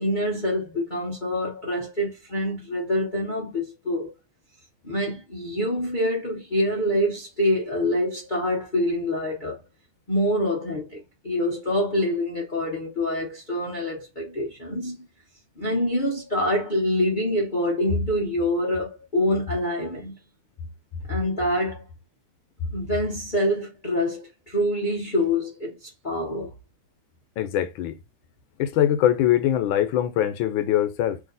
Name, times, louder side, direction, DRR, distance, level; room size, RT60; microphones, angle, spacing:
voice 1, 0.0-4.1 4.8-9.6 10.1-15.0 15.6-20.2 21.1-21.9 22.7-26.5, left 1 dB, 55° left, 0.5 m, -26 dB
voice 2, 27.4-28.0 28.6-31.2, left 11 dB, 70° left, 1.4 m, -22 dB
3.5 x 2.8 x 3.9 m
omnidirectional pair, 2.4 m